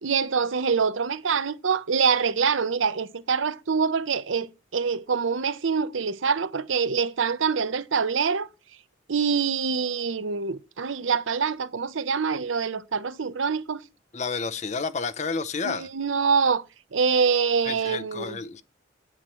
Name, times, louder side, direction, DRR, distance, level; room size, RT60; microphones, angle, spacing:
voice 1, 0.0-8.5 9.1-13.8 15.6-16.6 16.9-18.4, right 5 dB, 80° right, 0.7 m, -25 dB
voice 2, 14.1-15.9 17.6-18.6, left 4 dB, 35° left, 0.6 m, -30 dB
8.9 x 8.8 x 3.0 m
head